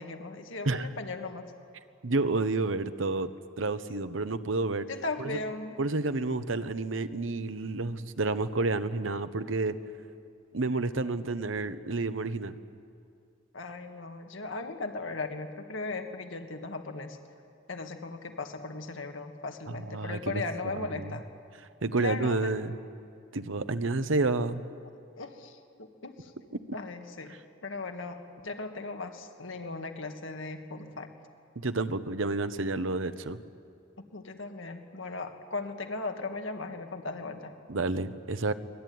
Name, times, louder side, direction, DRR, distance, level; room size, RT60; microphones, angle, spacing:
voice 1, 0.0-1.5 4.9-5.8 13.5-17.2 17.7-21.2 22.0-22.5 25.1-26.3 26.7-27.4 27.6-31.1 34.0-37.5, left 3 dB, 80° left, 5 dB, 1.8 m, -37 dB
voice 2, 2.0-3.3 3.6-4.9 5.2-5.4 5.8-9.7 10.5-12.6 19.7-20.4 20.7-21.1 21.8-22.8 23.3-24.6 26.5-26.6 31.6-33.4 37.7-38.5, right 3 dB, 85° right, 11 dB, 1.0 m, -30 dB
24.0 x 20.5 x 9.4 m, 2.4 s
head